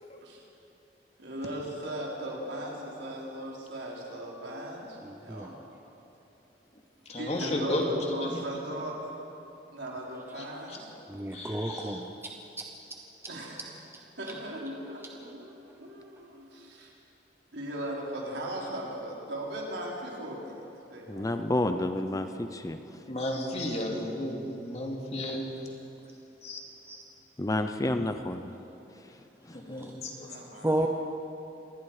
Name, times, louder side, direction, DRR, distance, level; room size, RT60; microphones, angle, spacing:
voice 1, 1.2-5.6 7.1-9.0 9.7-10.9 13.3-13.7 14.2-16.9 17.5-21.4 30.3-30.7, right 1 dB, 80° right, -3 dB, 4.3 m, -38 dB
voice 2, 5.0-5.5 11.1-12.7 26.8-27.0 29.8-30.0 30.3-30.9, right 1 dB, 15° right, 2 dB, 0.8 m, -33 dB
voice 3, 7.1-7.8 8.2-8.4 10.4-10.5 11.3-12.0 23.1-25.4 26.4-26.6 29.5-30.3, left 1 dB, 40° left, 0 dB, 2.7 m, -33 dB
voice 4, 21.1-23.0 27.4-28.5 29.4-29.6, left 1 dB, 20° left, 8 dB, 0.7 m, -30 dB
26.5 x 19.5 x 4.9 m, 3.0 s
head